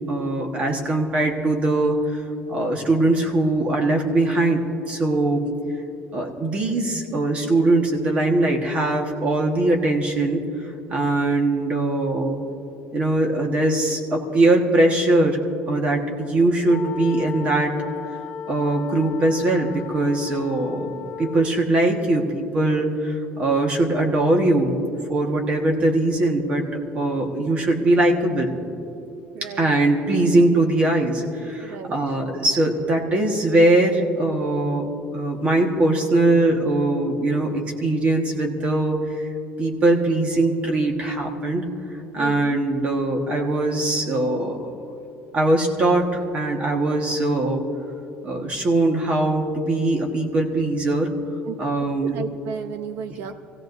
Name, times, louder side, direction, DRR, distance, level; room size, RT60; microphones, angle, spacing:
voice 1, 0.1-2.2 2.5-5.4 6.1-10.4 10.9-12.4 12.9-15.4 15.7-17.7 18.5-24.8 25.1-26.6 26.9-28.5 29.6-39.3 39.6-41.7 42.1-44.7 45.3-47.6 48.2-51.1 51.6-52.2, right 2 dB, 30° right, 2 dB, 1.4 m, -21 dB
sound 1, 16.7-21.6, left 7 dB, 35° left, 0.6 m, -36 dB
voice 2, 29.3-29.7 31.6-32.0 42.2-42.6 51.4-51.6 52.0-53.3, right 6 dB, 60° right, 8 dB, 0.8 m, -33 dB
24.5 x 16.5 x 2.7 m, 2.7 s
cardioid pair, 180°, 5 cm